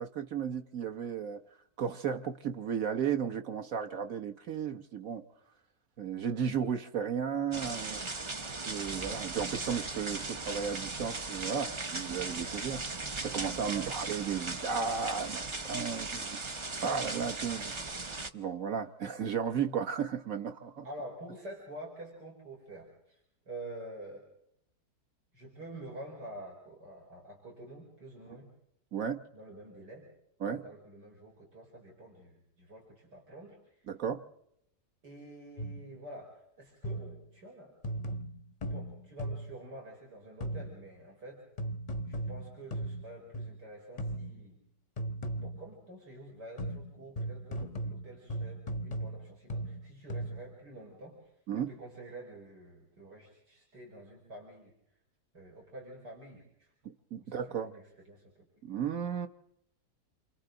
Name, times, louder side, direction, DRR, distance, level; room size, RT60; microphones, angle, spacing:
voice 1, 0.0-1.4 1.8-5.2 6.0-8.0 8.6-12.8 13.2-17.7 18.3-20.8 28.9-29.2 30.4-30.7 33.9-34.2 51.5-51.7 57.1-57.7 58.6-59.3, right 7 dB, 60° right, 1.4 m, -34 dB
sound 1, 7.5-18.3, right 3 dB, 35° right, 0.5 m, -38 dB
voice 2, 20.8-24.2 25.3-28.5 29.3-30.1 30.5-33.9 35.0-37.7 38.7-41.4 42.1-44.6 45.4-51.2 51.5-54.7 55.3-56.7 57.2-58.5, right 1 dB, 90° right, 5.5 m, -48 dB
sound 2, 35.6-36.0 36.8-37.3 37.8-39.6 40.4-40.9 41.6-43.7 44.0-44.5 45.0-45.7 46.6-50.6, right 1 dB, 35° left, 0.7 m, -38 dB
28.0 x 26.0 x 3.9 m
omnidirectional pair, 1.8 m